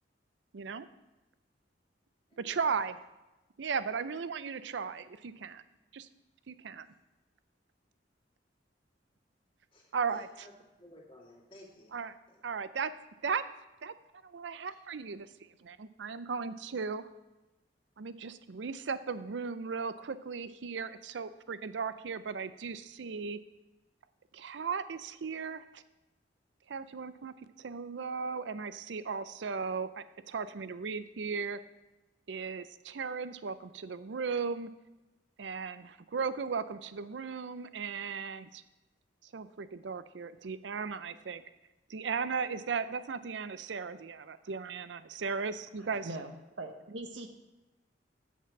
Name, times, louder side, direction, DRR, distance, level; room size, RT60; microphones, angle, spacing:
voice 1, 0.5-0.9 2.4-3.0 3.6-5.6 5.9-6.1 6.5-6.9 9.9-10.3 11.9-12.1 12.4-12.9 13.2-13.4 13.8-13.9 14.2-15.3 15.6-17.1 18.0-23.4 24.3-25.8 26.7-31.6 32.3-34.7 35.4-38.6 39.3-41.4 41.9-46.1, right 5 dB, 70° right, 13 dB, 0.5 m, -36 dB
voice 2, 2.3-2.8 6.8-7.0 9.7-10.5 10.8-12.0 12.3-12.4, left 1 dB, 30° left, -2 dB, 2.4 m, -55 dB
voice 3, 45.8-46.3 46.6-47.3, right 2 dB, 90° right, 5 dB, 0.9 m, -41 dB
8.0 x 7.3 x 5.9 m, 1.1 s
head